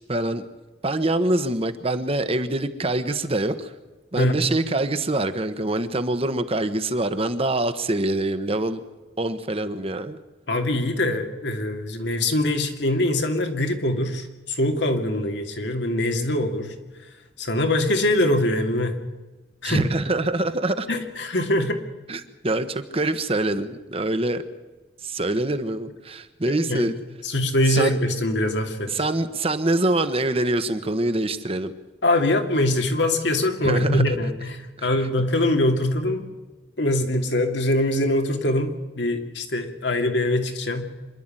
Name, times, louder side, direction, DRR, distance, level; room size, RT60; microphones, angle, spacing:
voice 1, 0.1-0.5 0.8-3.7 4.1-8.8 9.2-10.2 19.6-20.9 22.1-24.4 25.0-27.0 27.7-28.0 28.9-31.7 33.6-34.2 34.8-34.9, right 2 dB, 35° right, 10 dB, 1.3 m, -25 dB
voice 2, 10.5-16.7 17.4-19.0 19.6-19.8 20.9-21.8 26.5-26.9 27.2-28.9 32.0-36.3 36.8-40.9, left 1 dB, 85° left, 4 dB, 2.7 m, -23 dB
26.5 x 11.5 x 9.0 m, 1.2 s
head